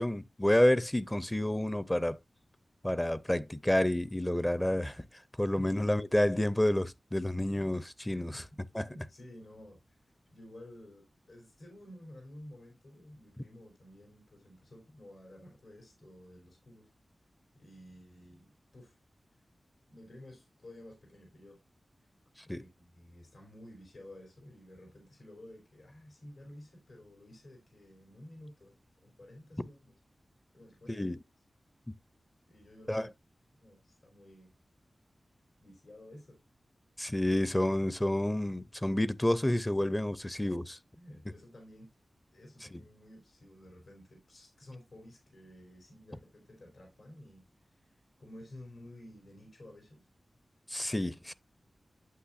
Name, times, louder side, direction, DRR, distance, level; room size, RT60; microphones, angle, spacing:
voice 1, 0.0-2.2 2.8-5.1 5.4-8.4 8.7-8.8 22.5-22.6 30.9-31.2 32.9-33.1 37.0-40.8 42.7-42.8 50.7-51.3, left 1 dB, 15° left, 0.5 m, -29 dB
voice 2, 8.7-16.9 17.5-19.0 19.3-19.4 19.9-21.6 22.0-22.1 22.5-28.7 29.0-29.9 30.5-31.1 32.5-33.1 33.6-34.5 35.6-36.4 41.0-41.9 42.3-50.1, left 1 dB, 75° left, 3.4 m, -53 dB
8.4 x 8.2 x 2.5 m
wide cardioid pair, 75°, 0 cm